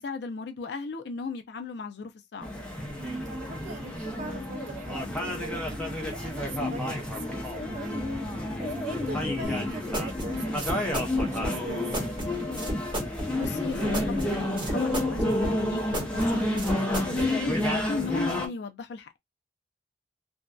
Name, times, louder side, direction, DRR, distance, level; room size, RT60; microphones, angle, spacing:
voice 1, 0.0-2.5 9.1-9.4 13.4-17.5 17.9-19.2, left 4 dB, 65° left, 0.4 m, -36 dB
sound 1, 2.4-18.5, left 1 dB, 5° left, 0.6 m, -30 dB
voice 2, 3.0-12.2, right 2 dB, 40° right, 0.5 m, -41 dB
sound 2, 9.4-17.3, equal, 25° right, 0.9 m, -33 dB
2.6 x 2.2 x 2.2 m
head